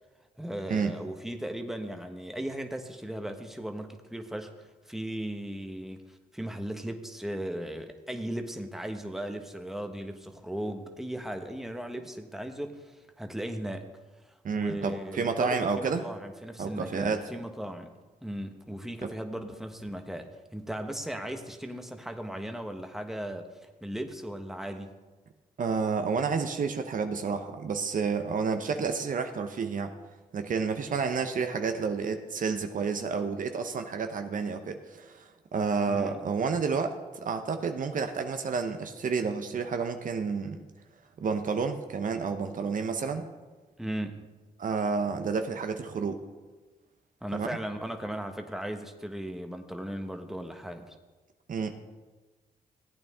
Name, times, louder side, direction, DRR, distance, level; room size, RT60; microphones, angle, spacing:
voice 1, 0.4-13.9 14.5-17.9 18.2-23.5 23.8-25.0 35.9-36.2 43.8-44.2 47.2-50.9, right 1 dB, ahead, 5 dB, 1.2 m, -37 dB
voice 2, 14.4-16.1 16.6-17.2 19.0-19.1 25.6-29.9 30.3-40.6 41.2-43.3 44.6-46.2 47.3-47.6 51.5-51.7, right 5 dB, 60° right, 7 dB, 0.9 m, -30 dB
15.5 x 8.8 x 3.6 m, 1.3 s
cardioid pair, 65°, 15 cm